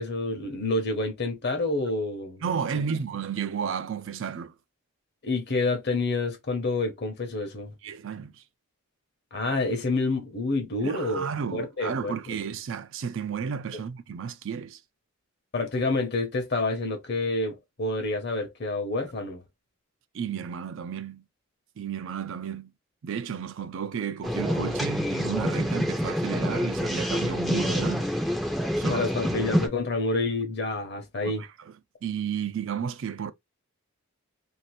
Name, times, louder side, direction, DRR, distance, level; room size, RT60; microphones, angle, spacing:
voice 1, 0.0-2.4 2.7-2.8 5.2-7.7 9.3-12.2 15.5-19.4 28.9-31.4, left 2 dB, 50° left, 0.9 m, -28 dB
voice 2, 2.4-4.5 7.8-8.4 10.8-14.8 20.1-21.2 21.8-22.7 23.0-28.1 28.8-29.4 31.2-31.7 32.0-33.3, right 7 dB, 60° right, 0.4 m, -33 dB
sound 1, 24.2-29.7, equal, ahead, 0.5 m, -27 dB
2.7 x 2.5 x 3.2 m
head